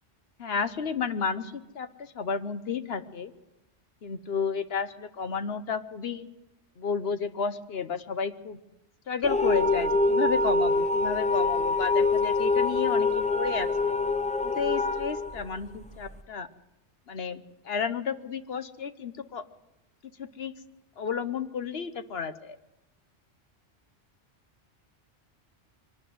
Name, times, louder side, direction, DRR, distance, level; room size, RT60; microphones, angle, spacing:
voice 1, 0.4-3.3 4.0-6.3 6.8-8.6 9.1-13.9 14.4-16.5 17.1-19.4 20.2-20.5 21.0-22.6, left 6 dB, 60° left, 11 dB, 1.1 m, -32 dB
sound 1, 9.2-16.2, left 3 dB, 5° left, 0.7 m, -25 dB
23.0 x 12.5 x 9.4 m, 0.96 s
omnidirectional pair, 1.2 m